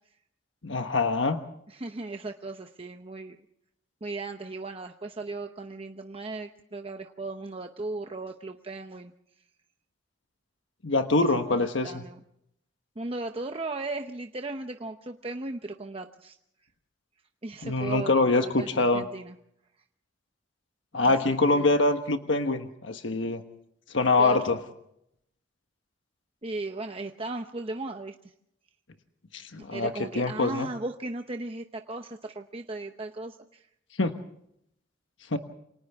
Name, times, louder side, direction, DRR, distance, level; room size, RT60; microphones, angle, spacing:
voice 1, 0.6-1.4 10.8-12.0 17.6-19.0 20.9-23.4 23.9-24.6 29.3-30.7 34.0-34.1 35.3-35.4, left 3 dB, 75° left, 6 dB, 1.3 m, -24 dB
voice 2, 1.7-3.4 4.0-9.1 11.5-12.2 13.0-16.4 17.4-18.1 18.4-19.3 21.0-21.7 24.2-24.4 26.4-28.1 29.6-33.7, right 2 dB, 30° right, 5 dB, 0.9 m, -37 dB
28.5 x 26.0 x 3.6 m, 0.75 s
head